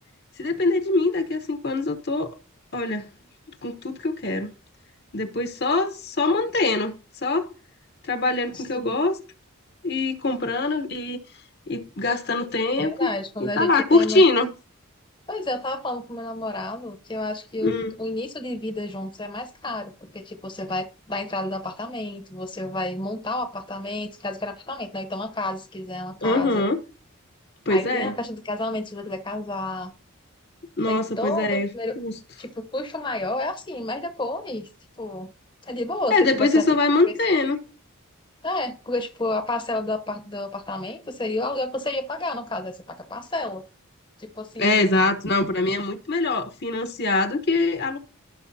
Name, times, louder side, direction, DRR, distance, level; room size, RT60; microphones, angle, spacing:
voice 1, 0.4-2.3 2.7-3.0 3.6-4.5 5.1-6.9 7.2-7.5 8.1-9.2 9.8-11.2 11.7-13.1 13.4-14.5 17.6-17.9 26.2-26.8 27.7-28.2 30.8-31.7 32.0-32.1 36.1-37.6 44.6-48.0, left 3 dB, 45° left, 1.1 m, -23 dB
voice 2, 8.5-8.9 12.8-14.2 15.3-26.6 27.7-29.9 30.9-31.9 32.4-34.7 35.0-35.3 35.6-36.7 38.4-43.6 44.2-45.1, left 2 dB, 20° left, 1.0 m, -30 dB
17.5 x 6.2 x 2.8 m
head